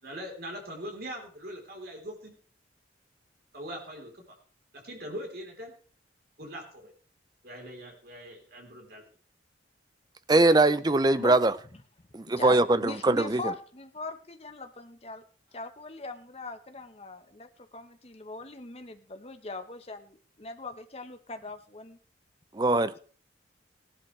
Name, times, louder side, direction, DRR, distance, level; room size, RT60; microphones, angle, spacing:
voice 1, 0.0-2.4 3.5-4.2 4.7-5.7 6.4-6.9 7.4-9.0, equal, 55° right, 3.8 m, -41 dB
voice 2, 10.3-11.5 12.1-13.4 22.5-23.0, right 2 dB, 20° right, 0.5 m, -22 dB
voice 3, 12.0-15.2 15.5-22.0, left 3 dB, 30° left, 1.1 m, -41 dB
17.5 x 12.0 x 3.3 m
head